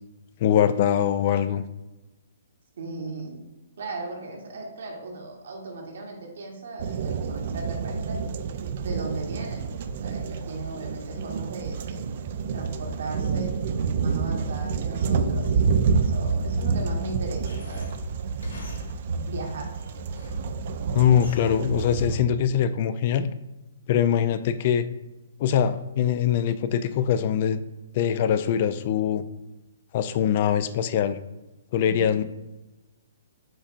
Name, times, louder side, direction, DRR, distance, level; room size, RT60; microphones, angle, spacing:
voice 1, 0.4-1.6 20.9-23.3 23.9-24.8 25.4-27.6 27.9-29.2 29.9-31.2 31.7-32.2, left 9 dB, 45° left, 12 dB, 0.3 m, -22 dB
voice 2, 2.8-3.4 3.8-8.3 8.8-9.7 10.0-12.0 12.5-13.6 14.0-17.9 19.3-19.7 31.8-32.2, right 3 dB, 70° right, 1 dB, 1.2 m, -37 dB
sound 1, 6.8-22.2, right 5 dB, 50° right, 0.3 m, -28 dB
sound 2, 17.4-19.3 19.8-20.6 21.1-21.8, left 1 dB, 90° left, 1.2 m, -44 dB
7.6 x 2.7 x 2.4 m, 1.0 s
hypercardioid pair, 140°, 0 cm